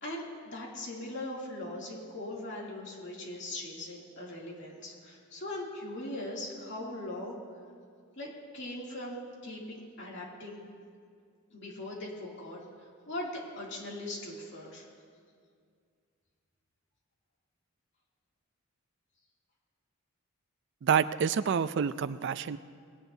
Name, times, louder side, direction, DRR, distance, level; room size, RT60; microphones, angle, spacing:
voice 1, 0.0-7.4 8.2-8.3 8.5-10.6 11.5-12.6 13.1-14.9, left 1 dB, 55° left, -3 dB, 2.7 m, -40 dB
voice 2, 20.8-22.6, right 7 dB, 55° right, 14 dB, 0.3 m, -28 dB
20.0 x 17.0 x 2.7 m, 2.1 s
head